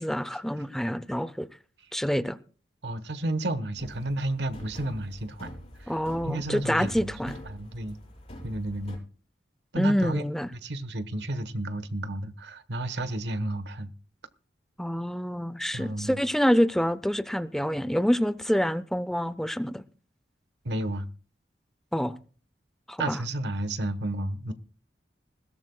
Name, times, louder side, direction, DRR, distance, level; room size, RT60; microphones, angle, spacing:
voice 1, 0.0-1.5 1.9-2.4 5.9-7.3 9.7-10.5 14.8-19.8 21.9-22.2 22.9-23.2, equal, ahead, 0.6 m, -27 dB
voice 2, 2.8-5.5 5.8-7.1 7.4-8.0 8.4-9.0 9.7-10.2 10.5-13.9 15.7-16.2 20.6-21.1 23.0-24.5, right 1 dB, 75° right, 1.2 m, -32 dB
sound 1, 3.8-9.0, equal, 35° left, 6.6 m, -45 dB
20.5 x 16.5 x 2.3 m
head